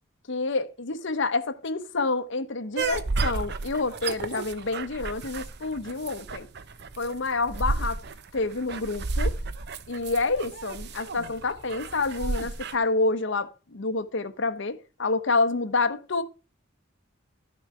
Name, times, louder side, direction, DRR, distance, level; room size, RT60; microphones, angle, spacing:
voice 1, 0.3-6.5 7.0-8.0 8.3-9.4 9.9-16.2, left 3 dB, 65° left, 0.9 m, -28 dB
sound 1, 2.8-12.7, right 3 dB, 55° right, 0.7 m, -32 dB
12.0 x 6.1 x 4.8 m
head